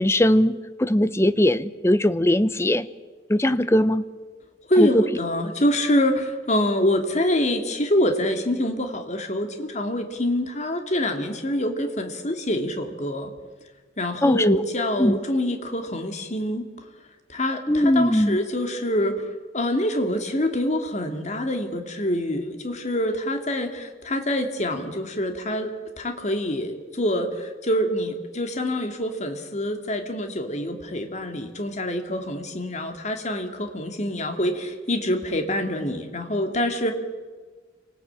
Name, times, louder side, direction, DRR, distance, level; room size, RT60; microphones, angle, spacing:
voice 1, 0.0-2.9 3.3-4.0 4.8-5.0 14.2-14.6 15.0-15.2 17.7-18.4, left 1 dB, 15° left, 14 dB, 0.8 m, -20 dB
voice 2, 4.7-13.3 14.0-16.7 17.3-36.9, left 1 dB, 40° left, 5 dB, 2.5 m, -25 dB
27.5 x 19.0 x 8.9 m, 1.4 s
head